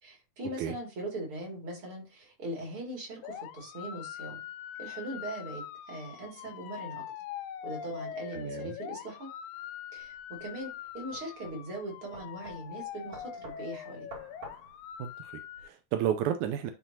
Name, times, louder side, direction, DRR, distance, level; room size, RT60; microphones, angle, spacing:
voice 1, 0.0-4.4 4.8-7.0 7.6-9.3 9.9-14.1, right 1 dB, 45° right, 3.3 m, -40 dB
sound 1, 3.2-15.7, left 10 dB, 80° left, 1.5 m, -43 dB
voice 2, 8.3-8.8 15.0-16.7, right 10 dB, 85° right, 2.0 m, -32 dB
sound 2, 10.0-15.6, right 3 dB, 65° right, 3.2 m, -51 dB
10.5 x 4.0 x 2.8 m
omnidirectional pair, 3.4 m